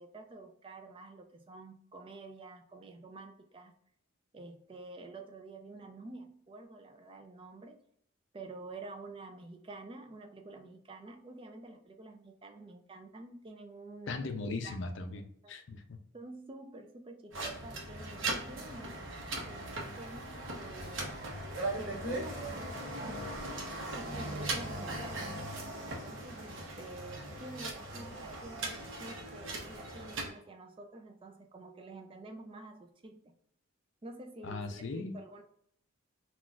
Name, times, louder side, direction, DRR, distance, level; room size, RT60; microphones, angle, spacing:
voice 1, 0.0-3.7 4.3-7.8 8.3-14.8 15.4-15.5 16.1-19.0 19.4-21.2 21.8-25.6 25.8-33.3 34.0-35.4, right 2 dB, 25° right, 6 dB, 0.3 m, -48 dB
voice 2, 14.1-16.0 34.4-35.2, left 3 dB, 60° left, 6 dB, 0.5 m, -38 dB
sound 1, 17.3-30.3, right 2 dB, 65° right, 0.8 m, -39 dB
3.9 x 2.3 x 2.3 m, 0.69 s
head